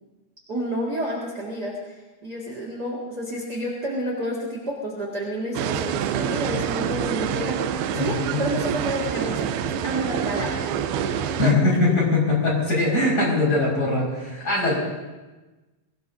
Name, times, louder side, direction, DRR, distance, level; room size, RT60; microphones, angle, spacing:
voice 1, 0.5-1.9 2.2-10.5 11.4-11.8 14.6-14.8, equal, 40° right, -4 dB, 1.4 m, -30 dB
sound 1, 5.5-11.5, right 8 dB, 90° right, 2.2 m, -27 dB
voice 2, 7.9-8.4 11.4-14.8, left 2 dB, 20° left, -5 dB, 5.8 m, -21 dB
23.5 x 19.0 x 2.8 m, 1.2 s
omnidirectional pair, 5.4 m